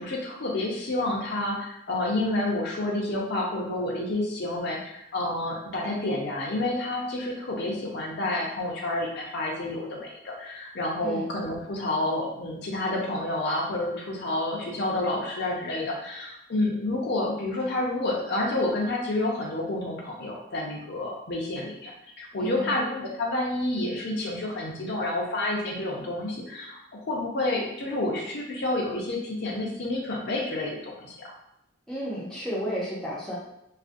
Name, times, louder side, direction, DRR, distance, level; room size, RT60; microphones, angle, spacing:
voice 1, 0.0-21.9 22.2-31.3, left 2 dB, 55° left, -2 dB, 0.5 m, -29 dB
voice 2, 22.4-22.7 31.9-33.4, equal, 5° left, -7 dB, 0.5 m, -32 dB
2.4 x 2.1 x 2.5 m, 0.81 s
head